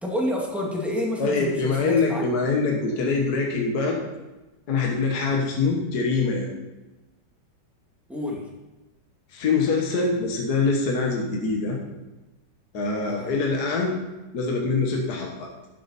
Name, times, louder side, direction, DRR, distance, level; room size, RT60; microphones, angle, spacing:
voice 1, 0.0-2.2 8.1-8.4 13.1-13.3, equal, ahead, -3 dB, 2.1 m, -28 dB
voice 2, 1.2-4.0 4.7-6.5 9.3-11.8 12.7-14.0 14.3-15.5, left 4 dB, 55° left, -1 dB, 1.8 m, -24 dB
12.0 x 7.8 x 4.2 m, 1.1 s
omnidirectional pair, 2.1 m